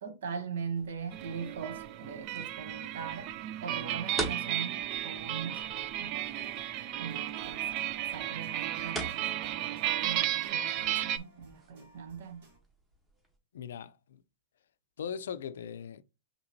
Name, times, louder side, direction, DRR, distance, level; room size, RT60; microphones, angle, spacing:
voice 1, 0.0-3.3 3.6-5.6 6.0-6.2 7.0-7.6 8.1-9.3 9.9-12.4, right 6 dB, 80° right, 0.9 m, -40 dB
sound 1, 0.8-13.4, right 2 dB, 10° right, 1.1 m, -46 dB
sound 2, 1.1-11.2, right 12 dB, 40° right, 0.3 m, -34 dB
sound 3, 6.2-12.6, right 3 dB, 65° right, 2.0 m, -59 dB
voice 2, 13.5-14.2 15.0-16.0, left 7 dB, 85° left, 0.4 m, -39 dB
5.8 x 3.0 x 2.7 m
supercardioid pair, 150°, 0 cm